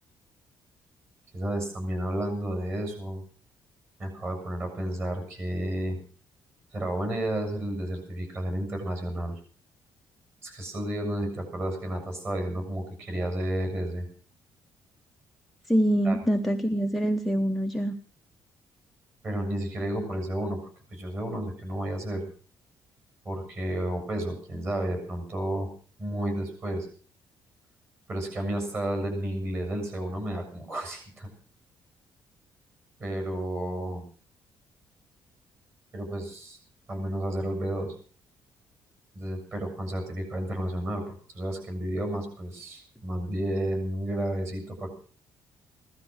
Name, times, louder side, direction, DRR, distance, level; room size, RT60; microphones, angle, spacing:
voice 1, 1.3-3.2 4.0-6.0 6.7-9.4 10.4-14.1 16.0-16.2 19.2-20.6 20.9-22.2 23.3-25.7 26.0-26.9 28.1-31.3 33.0-34.0 35.9-36.6 36.9-38.0 39.1-44.9, right 1 dB, 30° right, 5 dB, 7.1 m, -31 dB
voice 2, 15.7-18.0, equal, ahead, 3 dB, 0.8 m, -25 dB
17.0 x 13.0 x 6.3 m, 0.41 s
cardioid pair, 175°, 8 cm